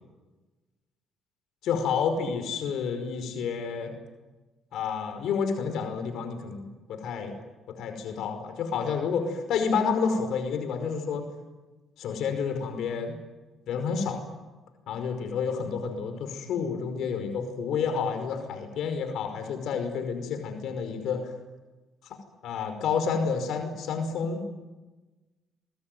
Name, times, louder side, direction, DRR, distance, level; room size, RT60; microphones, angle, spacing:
voice 1, 1.6-3.9 4.7-7.4 7.7-11.3 12.0-13.2 13.7-14.2 14.9-21.3 22.4-24.5, left 6 dB, 75° left, 6 dB, 5.3 m, -29 dB
27.5 x 22.0 x 9.4 m, 1.2 s
cardioid pair, 105°, 0 cm